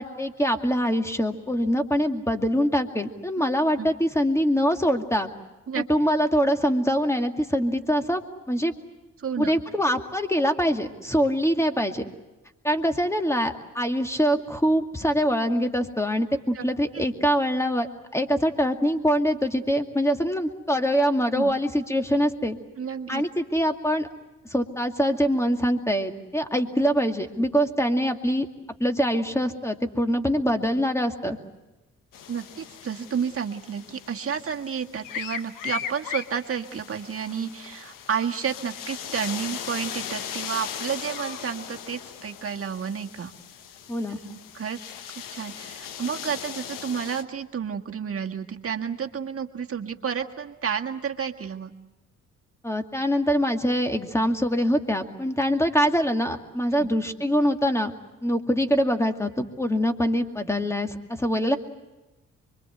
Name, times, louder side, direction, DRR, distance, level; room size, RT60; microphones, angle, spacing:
voice 1, 0.0-5.3 5.8-8.2 8.5-8.7 9.4-12.0 12.6-22.6 23.1-24.1 24.5-28.5 28.8-31.4 43.9-44.2 52.6-57.9 58.2-61.6, equal, 10° left, 5 dB, 2.4 m, -24 dB
voice 2, 9.2-9.5 16.5-16.6 16.9-17.0 21.3-21.6 22.8-23.2 32.3-43.3 44.2-44.8 45.2-51.7 56.7-56.9, right 7 dB, 45° right, 3 dB, 1.8 m, -31 dB
sound 1, 32.1-47.2, left 9 dB, 85° left, 1.3 m, -38 dB
25.0 x 23.0 x 8.0 m, 1.1 s
supercardioid pair, 65°, 32 cm